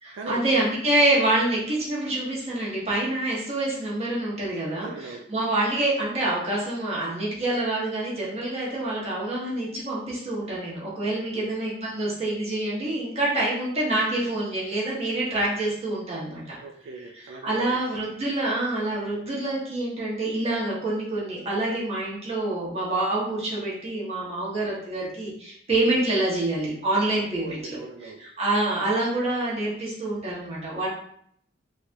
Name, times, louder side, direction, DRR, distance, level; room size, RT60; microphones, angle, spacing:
voice 1, 0.0-16.6 17.4-27.8 28.2-30.9, right 2 dB, 35° right, -6 dB, 1.0 m, -26 dB
voice 2, 4.8-5.2 11.3-11.5 16.6-17.8 27.4-28.2, right 2 dB, 90° right, 4 dB, 0.3 m, -39 dB
3.3 x 2.3 x 2.6 m, 0.68 s
head